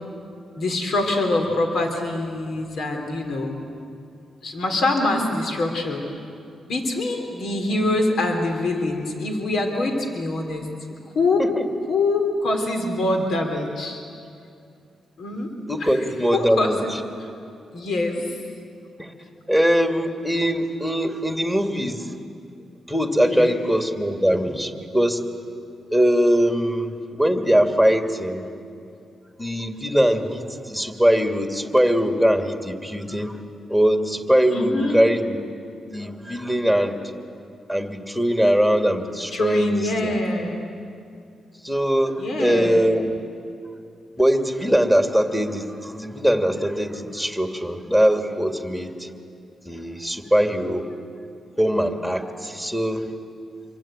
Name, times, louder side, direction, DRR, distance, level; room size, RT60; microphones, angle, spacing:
voice 1, 0.6-3.6 4.4-6.1 6.6-10.7 11.1-11.5 11.9-14.0 15.2-15.5 15.8-15.9 16.3-16.9 17.7-18.4 23.2-23.6 34.5-35.0 39.3-40.7 42.2-42.9, left 2 dB, 75° left, 3 dB, 3.5 m, -24 dB
voice 2, 15.7-17.0 19.0-19.1 19.5-22.1 22.9-25.2 25.9-28.5 29.4-33.4 33.7-35.5 35.9-37.1 37.7-40.2 41.6-43.1 44.2-49.1 49.6-50.9 51.6-53.1, equal, 10° left, 4 dB, 2.6 m, -21 dB
27.0 x 23.5 x 9.0 m, 2.5 s
cardioid pair, 85°, 0 cm